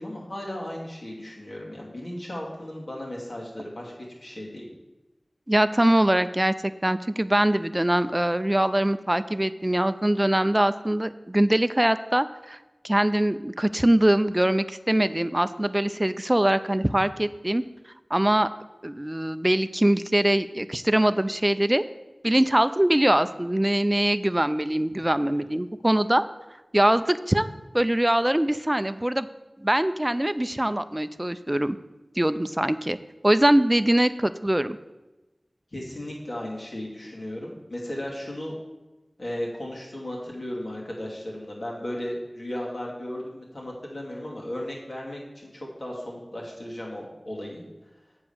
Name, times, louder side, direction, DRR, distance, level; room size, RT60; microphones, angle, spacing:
voice 1, 0.0-3.9 4.2-4.7 24.9-25.0 25.3-25.5 35.7-38.6 39.2-47.6, left 1 dB, 65° left, -3 dB, 2.3 m, -35 dB
voice 2, 5.5-6.5 6.8-12.6 12.8-17.6 18.1-18.5 18.8-21.8 22.2-26.2 26.7-27.5 27.7-29.3 29.6-31.8 32.2-33.0 33.2-34.8, right 1 dB, 20° right, 12 dB, 0.4 m, -22 dB
7.9 x 4.9 x 7.1 m, 1.1 s
wide cardioid pair, 55°, 0 cm